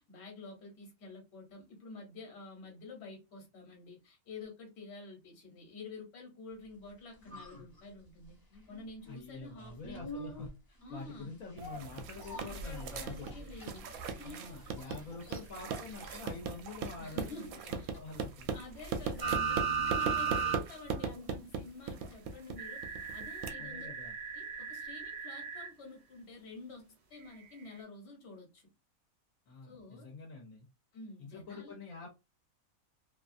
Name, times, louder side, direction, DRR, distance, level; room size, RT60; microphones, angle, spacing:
voice 1, 0.0-8.4 8.7-10.0 10.8-11.3 12.3-14.6 17.0-17.9 18.5-23.9 24.3-26.8 27.1-28.7 29.6-30.1 30.9-31.8, left 3 dB, 55° left, 1.3 m, -49 dB
sound 1, 6.7-24.7 25.0-25.1, equal, 25° left, 0.5 m, -52 dB
voice 2, 9.1-13.3 14.2-18.5 23.6-24.2 29.5-30.7 31.2-32.1, left 4 dB, 70° left, 1.2 m, -47 dB
sound 2, 11.6-23.5, right 5 dB, 80° right, 1.0 m, -39 dB
sound 3, 19.2-20.6 20.9-21.0 22.6-25.7 27.4-27.5, right 6 dB, 60° right, 0.4 m, -35 dB
2.7 x 2.3 x 2.5 m
omnidirectional pair, 1.5 m